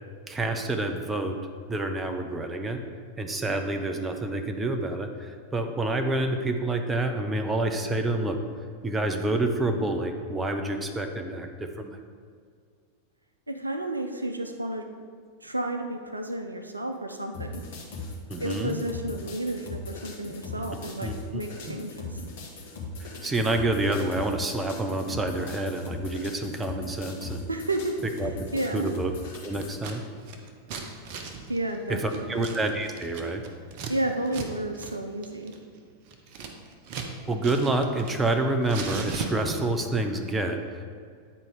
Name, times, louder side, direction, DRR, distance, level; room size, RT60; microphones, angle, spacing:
voice 1, 0.3-1.4 1.7-2.8 3.2-8.4 8.8-12.0 18.3-18.8 21.0-21.1 21.7-21.8 23.0-27.5 28.2-28.3 28.7-29.1 29.4-30.0 31.9-33.4 37.3-40.9, right 2 dB, 15° right, 5 dB, 0.7 m, -28 dB
voice 2, 13.5-14.8 15.4-17.6 18.4-22.2 27.5-28.0 28.5-28.9 31.5-32.5 33.9-35.5, right 1 dB, 80° right, 5 dB, 0.6 m, -31 dB
sound 1, 17.3-29.7, left 3 dB, 55° left, 1.9 m, -39 dB
Scissors, 29.6-30.0 30.2-33.9 34.3-34.5 34.7-34.9 35.2-37.1 37.4-38.3 38.6-39.8, right 5 dB, 45° right, 0.9 m, -37 dB
9.8 x 4.5 x 4.9 m, 2.1 s
figure-of-eight pair, 90°, 0 cm